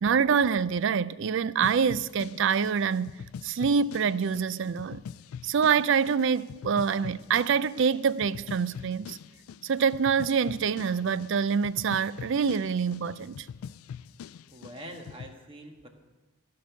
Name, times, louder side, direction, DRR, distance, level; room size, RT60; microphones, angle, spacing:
voice 1, 0.0-5.0 5.4-9.2 9.6-13.5, right 6 dB, 60° right, 0.4 m, -26 dB
sound 1, 1.6-15.3, left 7 dB, 90° left, 0.3 m, -44 dB
voice 2, 14.5-15.9, right 1 dB, 25° right, 1.4 m, -44 dB
15.5 x 6.5 x 8.2 m
head